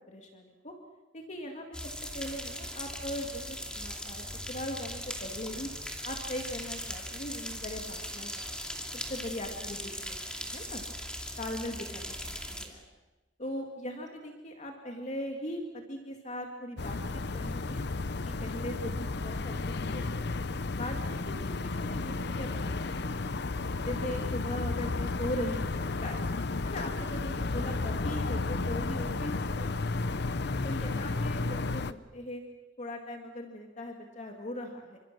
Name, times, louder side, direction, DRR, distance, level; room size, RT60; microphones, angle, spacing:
voice 1, 0.1-0.7 1.1-1.7 2.1-5.7 6.0-8.5 9.1-10.8 11.4-12.8 13.4-17.8 18.2-20.4 20.8-22.8 23.9-26.2 26.6-30.2 30.6-32.4 32.8-35.0, left 1 dB, 40° left, 2 dB, 2.3 m, -40 dB
sound 1, 1.7-12.7, equal, 5° left, 2.7 m, -39 dB
sound 2, 16.8-31.9, left 3 dB, 65° left, 0.8 m, -33 dB
27.5 x 25.5 x 6.2 m, 1.1 s
head